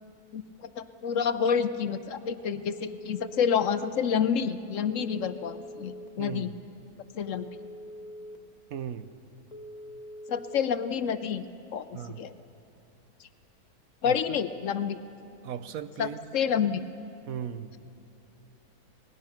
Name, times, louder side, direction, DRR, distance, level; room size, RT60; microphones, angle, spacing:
voice 1, 0.3-6.5 7.1-7.5 10.3-11.4 11.7-12.3 14.0-15.0 16.0-16.8, left 7 dB, 65° left, 1.0 m, -28 dB
Telephone, 2.7-3.8 5.0-6.1 7.3-8.4 9.5-10.6, equal, 30° left, 1.4 m, -43 dB
voice 2, 6.2-6.6 8.7-9.1 11.9-12.3 14.0-14.4 15.4-16.2 17.3-17.8, right 8 dB, 70° right, 1.2 m, -37 dB
27.5 x 20.0 x 5.9 m
omnidirectional pair, 1.6 m